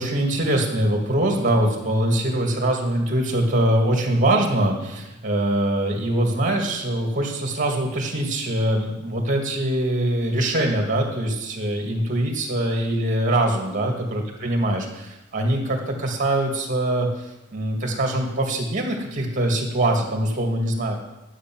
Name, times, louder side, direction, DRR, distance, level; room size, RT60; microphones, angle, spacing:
voice 1, 0.0-17.1 17.5-21.0, right 1 dB, 40° right, 1 dB, 2.1 m, -23 dB
11.5 x 8.1 x 6.1 m, 0.97 s
head